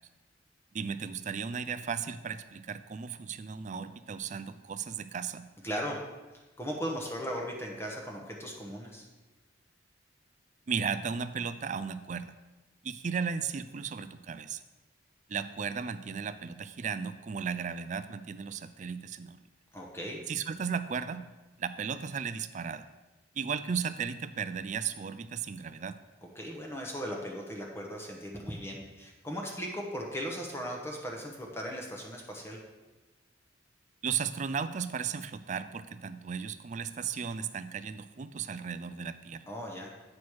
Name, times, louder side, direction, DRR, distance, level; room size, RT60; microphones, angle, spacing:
voice 1, 0.7-5.5 10.7-12.3 12.8-14.6 15.3-19.4 20.3-21.3 21.6-22.9 23.4-26.0 34.0-39.5, right 6 dB, 40° right, 13 dB, 0.3 m, -35 dB
voice 2, 5.6-6.0 6.6-9.1 19.7-20.2 26.2-32.6 39.5-39.9, equal, 15° left, 0 dB, 0.9 m, -37 dB
8.6 x 6.2 x 4.7 m, 1.2 s
head